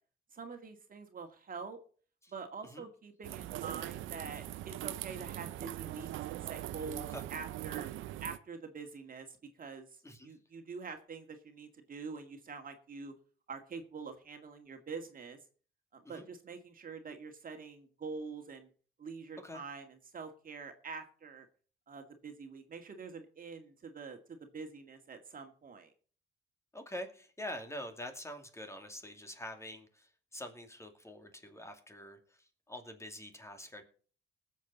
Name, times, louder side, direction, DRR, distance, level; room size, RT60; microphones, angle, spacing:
voice 1, 0.3-1.8 2.3-7.9 8.2-13.1 13.5-15.4 15.9-18.7 19.0-21.5 21.9-25.9, right 5 dB, 45° right, 6 dB, 2.1 m, -46 dB
sound 1, 3.2-8.4, right 14 dB, 85° right, 0.6 m, -41 dB
voice 2, 26.7-33.8, left 1 dB, 15° left, 6 dB, 2.5 m, -45 dB
19.5 x 7.4 x 4.1 m, 0.42 s
cardioid pair, 90°, 20 cm